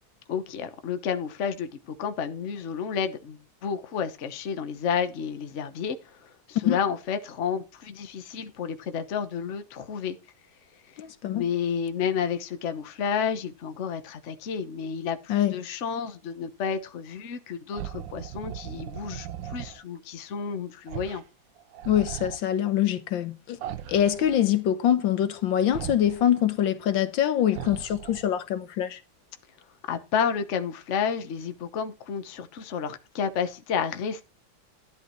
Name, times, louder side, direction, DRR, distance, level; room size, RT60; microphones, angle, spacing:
voice 1, 0.3-10.2 10.9-21.2 29.9-34.2, left 7 dB, 45° left, 1.2 m, -31 dB
voice 2, 11.0-11.4 15.3-15.5 21.9-23.6 23.9-29.0, left 10 dB, 75° left, 1.7 m, -24 dB
sound 1, 17.7-19.8 20.9-21.2 21.6-22.4 23.6-24.5 25.7-26.3 27.5-28.4, right 11 dB, 75° right, 1.5 m, -38 dB
12.5 x 10.5 x 3.1 m
omnidirectional pair, 2.1 m